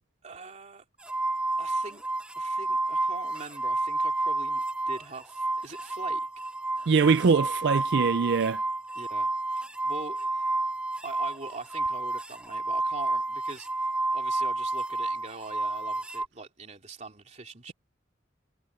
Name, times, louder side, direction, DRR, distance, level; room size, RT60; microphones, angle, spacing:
voice 1, 0.2-0.8 1.6-2.0 2.3-6.3 8.9-10.5 11.0-13.7 14.1-17.7, right 3 dB, 35° right, 3.2 m, -42 dB
sound 1, 1.1-5.0 5.3-16.3, right 2 dB, 5° right, 0.6 m, -30 dB
voice 2, 6.9-8.6, right 5 dB, 60° right, 0.4 m, -22 dB
head